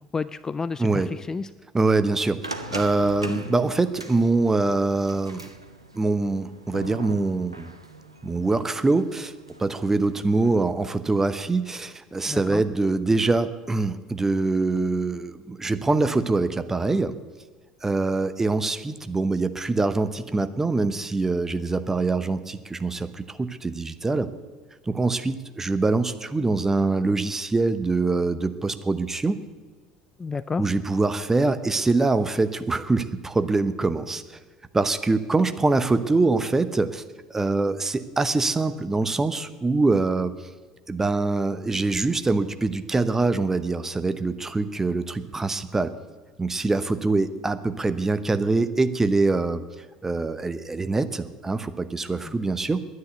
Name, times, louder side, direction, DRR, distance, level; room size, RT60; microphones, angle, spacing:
voice 1, 0.1-1.5 12.3-12.6 30.2-30.6, left 4 dB, 20° left, 16 dB, 0.3 m, -30 dB
voice 2, 1.7-2.4 2.7-5.4 5.9-7.7 8.2-9.3 9.6-17.1 17.8-24.3 24.9-29.4 30.6-34.4 34.7-37.0 37.3-40.3 40.9-45.9 46.4-49.6 50.0-52.8, right 3 dB, 15° right, 11 dB, 0.8 m, -24 dB
sound 1, 2.4-10.5, right 1 dB, 90° right, 0.8 m, -40 dB
10.5 x 9.6 x 9.1 m, 1.4 s
figure-of-eight pair, 65°, 3 cm